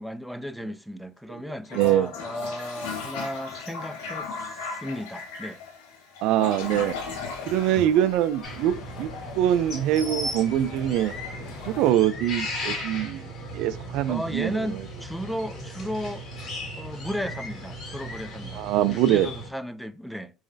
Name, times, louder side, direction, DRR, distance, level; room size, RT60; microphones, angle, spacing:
voice 1, 0.0-4.3 4.6-5.6 14.1-16.3 16.8-20.3, equal, ahead, 0.3 m, -34 dB
Toilet flush, 1.6-8.6, left 4 dB, 85° left, 1.5 m, -36 dB
voice 2, 1.7-2.1 6.2-6.9 7.5-9.1 9.4-11.1 11.7-13.2 13.5-14.5 18.6-19.3, right 12 dB, 70° right, 0.4 m, -23 dB
sound 1, 6.6-11.9, left 5 dB, 65° left, 1.2 m, -43 dB
sound 2, 8.4-19.5, equal, 45° left, 1.8 m, -36 dB
4.8 x 3.1 x 2.6 m
supercardioid pair, 100°, 0 cm